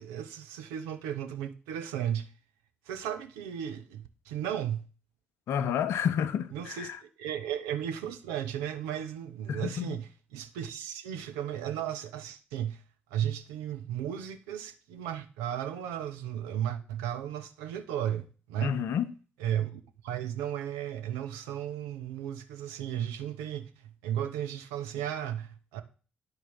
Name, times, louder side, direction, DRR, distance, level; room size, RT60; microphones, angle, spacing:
voice 1, 0.0-2.3 2.9-4.9 6.5-12.8 13.1-18.8 19.4-25.8, right 10 dB, 70° right, 0.8 m, -35 dB
voice 2, 5.5-7.0 9.5-10.0 18.6-19.1, left 8 dB, 60° left, 0.7 m, -30 dB
9.8 x 4.5 x 6.7 m
figure-of-eight pair, 45°, 5 cm